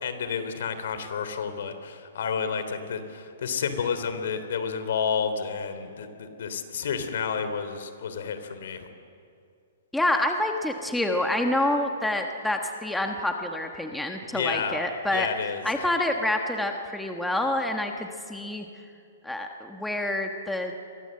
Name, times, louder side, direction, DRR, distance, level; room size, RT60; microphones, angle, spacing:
voice 1, 0.0-8.9 14.3-14.8 15.1-15.6, left 6 dB, 70° left, 9 dB, 3.2 m, -30 dB
voice 2, 9.9-15.3 15.6-18.7 19.2-20.7, left 1 dB, 5° left, 3 dB, 1.3 m, -27 dB
29.0 x 23.0 x 7.8 m, 2.4 s
hypercardioid pair, 160°, 0 cm